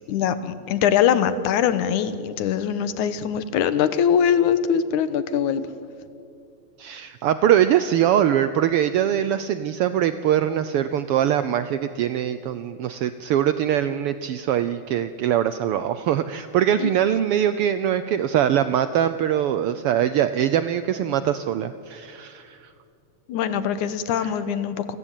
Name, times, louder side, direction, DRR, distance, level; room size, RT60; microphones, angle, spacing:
voice 1, 0.1-5.7 16.8-16.9 23.3-25.0, left 8 dB, 85° left, 12 dB, 2.6 m, -22 dB
voice 2, 6.8-22.6 24.2-24.3, right 10 dB, 80° right, 12 dB, 1.3 m, -22 dB
28.5 x 18.5 x 9.1 m, 2.4 s
omnidirectional pair, 3.4 m